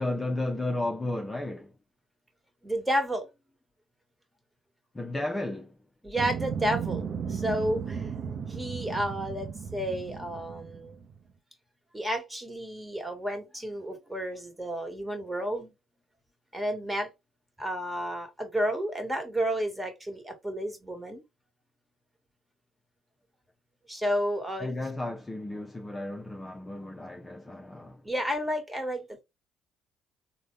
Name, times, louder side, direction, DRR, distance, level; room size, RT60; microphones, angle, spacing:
voice 1, 0.0-1.7 4.9-5.8 24.6-28.0, left 2 dB, 20° left, 0.5 m, -33 dB
voice 2, 2.6-3.3 6.0-8.1 8.5-11.0 11.9-15.7 16.5-17.1 17.6-21.2 23.9-24.7 28.0-29.2, equal, 10° right, 1.4 m, -31 dB
sound 1, 6.2-11.2, right 6 dB, 55° right, 0.6 m, -35 dB
3.8 x 2.1 x 3.1 m
supercardioid pair, 70°, 0 cm